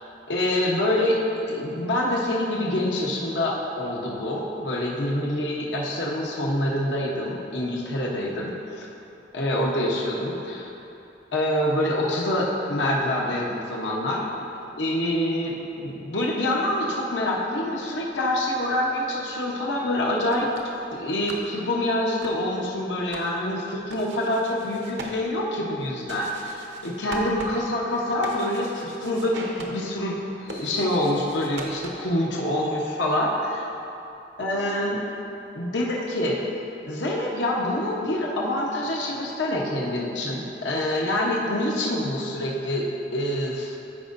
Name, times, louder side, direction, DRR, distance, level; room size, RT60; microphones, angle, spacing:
voice 1, 0.3-1.2 1.5-8.9 9.3-10.7 11.3-14.2 14.8-20.5 20.9-33.6 34.4-35.0 35.5-36.4 36.9-43.7, left 1 dB, 75° left, -3 dB, 1.0 m, -26 dB
sound 1, 20.1-32.2, right 2 dB, 70° right, 0.8 m, -42 dB
13.5 x 5.3 x 2.6 m, 2.8 s
head